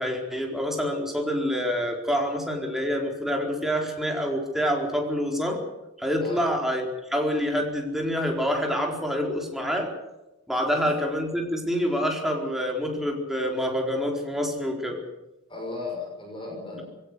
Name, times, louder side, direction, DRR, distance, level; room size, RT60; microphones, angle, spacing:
voice 1, 0.0-5.6 6.0-9.9 10.5-15.0, equal, ahead, 1 dB, 4.3 m, -27 dB
voice 2, 15.5-16.8, left 3 dB, 25° left, 0 dB, 6.4 m, -35 dB
21.5 x 17.5 x 8.2 m, 0.97 s
head